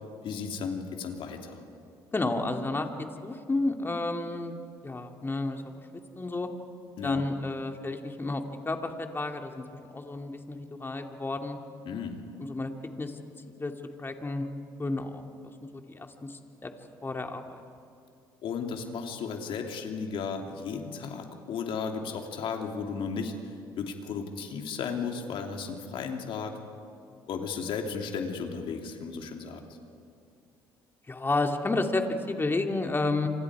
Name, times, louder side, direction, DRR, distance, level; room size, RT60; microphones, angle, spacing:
voice 1, 0.2-1.6 7.0-7.3 11.8-12.2 18.4-23.3 23.8-26.6 27.3-29.6, left 5 dB, 65° left, 3 dB, 2.8 m, -34 dB
voice 2, 2.1-4.5 4.8-5.7 6.2-6.5 7.0-9.6 9.9-11.6 12.4-12.7 13.0-13.2 13.6-13.7 14.0-14.5 14.8-16.7 17.0-17.6 31.1-33.3, left 2 dB, 25° left, 4 dB, 2.6 m, -31 dB
28.5 x 26.0 x 4.9 m, 2.5 s
supercardioid pair, 65°, 10 cm